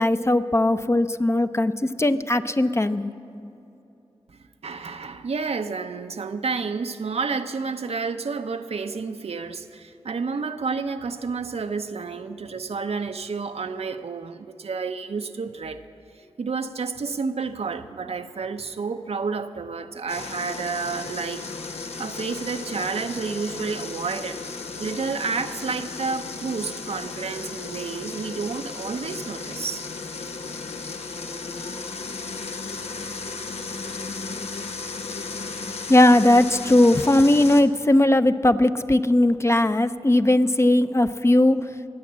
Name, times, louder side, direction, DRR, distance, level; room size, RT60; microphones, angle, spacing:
voice 1, 0.0-1.7 2.0-3.1 35.9-41.6, left 1 dB, 25° left, 10 dB, 0.6 m, -18 dB
voice 2, 4.3-15.8 16.2-21.5 21.7-24.4 24.8-29.9, right 4 dB, 75° right, 8 dB, 0.7 m, -30 dB
sound 1, 20.1-37.6, left 4 dB, 85° left, 0.8 m, -35 dB
22.5 x 8.4 x 7.4 m, 2.8 s
cardioid pair, 45°, 11 cm